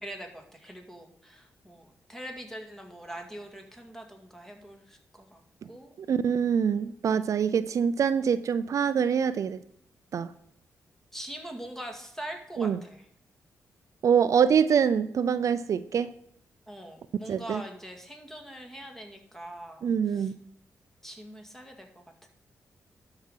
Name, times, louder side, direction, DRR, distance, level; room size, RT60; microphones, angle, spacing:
voice 1, 0.0-5.4 5.7-6.0 11.1-13.1 16.7-20.3 21.0-21.9, right 1 dB, 5° left, 4 dB, 2.1 m, -43 dB
voice 2, 6.1-9.6 10.1-10.3 12.6-12.8 14.0-16.1 17.3-17.6 19.8-20.4, right 7 dB, 65° right, 13 dB, 0.4 m, -25 dB
12.0 x 4.9 x 5.6 m, 0.70 s
cardioid pair, 75°, 6 cm